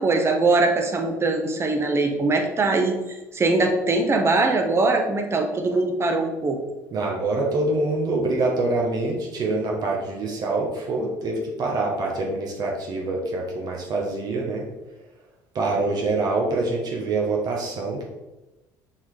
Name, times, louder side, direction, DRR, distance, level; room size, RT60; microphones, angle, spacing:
voice 1, 0.0-3.0 3.3-6.6, right 3 dB, 30° right, 4 dB, 1.2 m, -21 dB
voice 2, 6.9-14.6 15.5-18.0, right 2 dB, 50° right, -1 dB, 1.5 m, -25 dB
6.2 x 4.0 x 4.9 m, 1.1 s
supercardioid pair, 95°, 9 cm